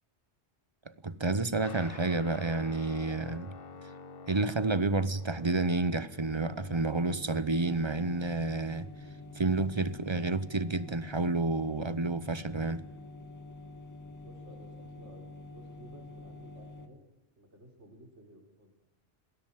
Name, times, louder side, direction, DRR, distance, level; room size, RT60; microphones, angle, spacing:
voice 1, 0.9-3.5 4.3-8.9 9.3-12.8, right 3 dB, 25° right, 0.8 m, -30 dB
Guitar, 1.6-10.4, left 4 dB, 55° left, 1.1 m, -50 dB
sound 1, 6.2-16.9, left 2 dB, 15° left, 1.9 m, -47 dB
voice 2, 14.2-17.0 17.4-18.7, equal, 75° right, 5.0 m, -55 dB
20.5 x 16.5 x 9.1 m
omnidirectional pair, 1.2 m